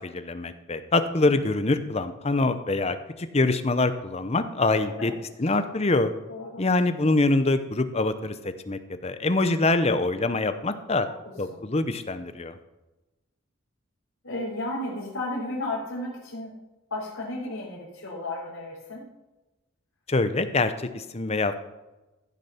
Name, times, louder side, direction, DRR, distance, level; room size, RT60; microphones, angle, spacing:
voice 1, 0.0-5.1 5.4-6.1 6.6-11.1 11.4-12.5 20.1-21.6, left 2 dB, 30° left, 10 dB, 0.7 m, -25 dB
voice 2, 6.3-6.6 11.1-11.2 11.5-11.6 14.2-16.5 16.9-19.1, left 2 dB, 80° left, -7 dB, 3.5 m, -33 dB
14.5 x 6.5 x 5.7 m, 1.1 s
head